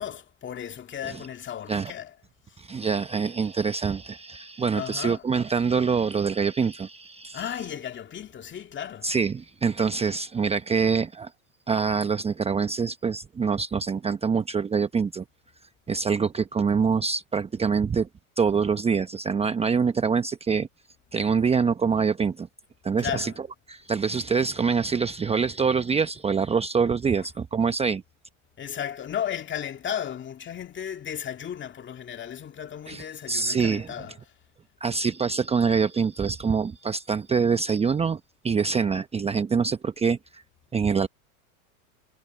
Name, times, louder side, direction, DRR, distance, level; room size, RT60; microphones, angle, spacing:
voice 1, 0.0-2.1 4.7-5.3 7.3-9.1 23.0-23.4 27.2-27.3 28.6-34.2, left 9 dB, 25° left, 2.5 m, -34 dB
voice 2, 2.6-7.4 9.0-11.3 11.7-15.2 15.9-18.1 18.4-20.7 21.1-22.5 22.8-23.3 23.7-28.0 32.9-33.9 34.8-38.2 38.4-40.4 40.7-41.1, right 5 dB, 15° right, 0.9 m, -25 dB
hypercardioid pair, 110°, 43 cm